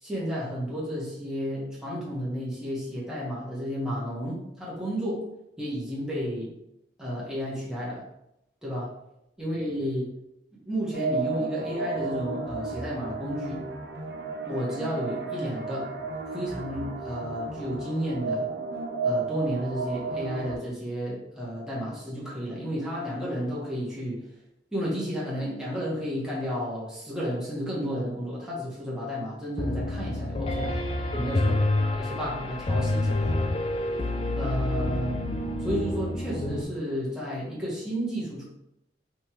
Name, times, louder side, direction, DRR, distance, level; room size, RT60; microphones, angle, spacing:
voice 1, 0.0-5.2 5.6-6.5 7.0-8.0 8.6-8.9 9.4-10.1 10.7-13.7 14.4-15.9 16.3-18.5 19.0-24.2 24.7-30.8 31.1-33.5 34.3-35.1 35.6-38.4, equal, 5° right, -7 dB, 1.3 m, -32 dB
sound 1, 10.9-20.6, right 3 dB, 60° right, 0.8 m, -33 dB
Piano, 29.6-36.6, left 2 dB, 30° left, 0.4 m, -28 dB
5.4 x 3.1 x 3.0 m, 0.84 s
head